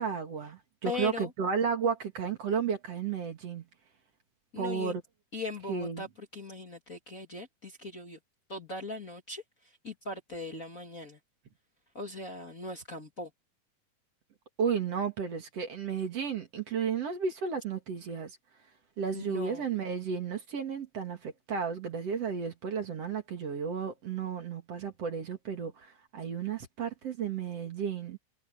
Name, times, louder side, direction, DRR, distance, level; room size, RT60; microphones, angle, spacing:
voice 1, 0.0-3.6 4.6-5.0 5.7-6.0 14.6-18.3 19.0-28.2, right 6 dB, 50° right, 3.0 m, -33 dB
voice 2, 0.9-1.3 4.5-4.9 5.3-8.2 8.5-9.4 9.8-11.2 11.9-13.3 19.1-19.7, left 3 dB, 30° left, 2.1 m, -39 dB
omnidirectional pair, 3.7 m